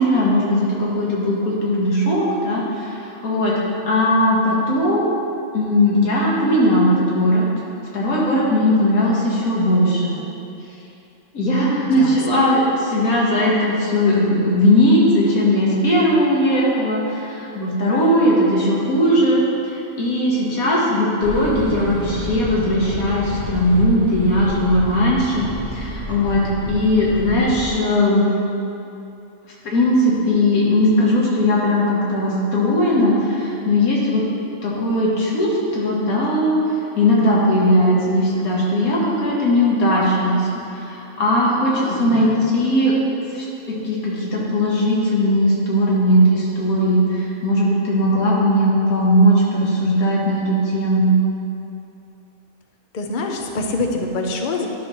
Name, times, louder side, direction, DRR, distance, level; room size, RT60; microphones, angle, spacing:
voice 1, 0.0-3.5 3.9-5.1 5.5-7.5 7.9-10.2 11.3-12.6 12.9-19.4 19.7-28.3 29.6-34.2 34.6-36.6 37.0-42.9 43.3-51.1, left 1 dB, 85° left, -5 dB, 1.7 m, -18 dB
voice 2, 11.8-12.5 41.9-42.5 52.9-54.7, left 2 dB, 50° left, 3 dB, 0.6 m, -26 dB
sound 1, 21.2-27.7, right 1 dB, 40° right, 1.0 m, -30 dB
11.0 x 6.3 x 3.0 m, 2.8 s
omnidirectional pair, 1.5 m